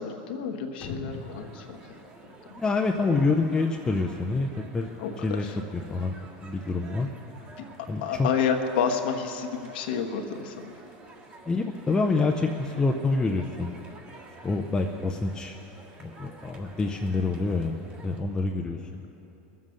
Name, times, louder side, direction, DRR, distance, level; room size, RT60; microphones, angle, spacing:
voice 1, 0.0-1.8 2.2-2.3 5.0-5.6 7.6-7.7 8.0-10.7, left 6 dB, 80° left, 3 dB, 1.2 m, -30 dB
sound 1, 0.8-3.3, left 4 dB, 35° left, 1.2 m, -42 dB
sound 2, 1.1-18.2, right 3 dB, 30° right, 1.9 m, -49 dB
voice 2, 2.5-4.5 4.7-4.9 5.2-5.5 5.7-7.1 7.9-8.3 11.5-13.7 14.4-15.6 16.0-17.8 18.0-19.0, left 3 dB, 15° left, 2 dB, 0.6 m, -27 dB
21.5 x 7.5 x 6.4 m, 2.9 s
supercardioid pair, 140°, 5 cm